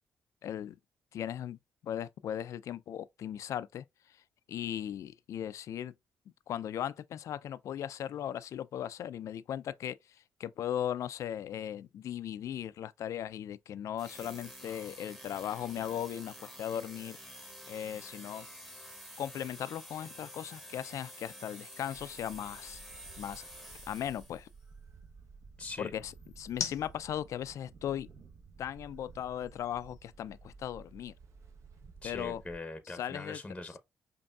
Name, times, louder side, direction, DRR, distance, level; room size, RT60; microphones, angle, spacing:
voice 1, 0.4-0.8 1.1-1.6 1.8-4.2 4.5-5.9 6.5-17.2 17.7-18.5 19.2-22.8 23.2-23.5 23.9-24.5 25.8-28.1 28.6-31.1 32.0-32.4 32.9-33.4, left 10 dB, 70° left, 0.3 m, -38 dB
sound 1, 14.0-24.5, equal, 5° right, 1.0 m, -49 dB
sound 2, 16.8-31.0, left 8 dB, 85° left, 0.7 m, -50 dB
sound 3, 21.9-32.6, right 4 dB, 65° right, 0.8 m, -54 dB
voice 2, 25.6-25.9 32.0-33.8, left 2 dB, 15° left, 0.7 m, -42 dB
5.2 x 2.6 x 2.3 m
supercardioid pair, 65°, 6 cm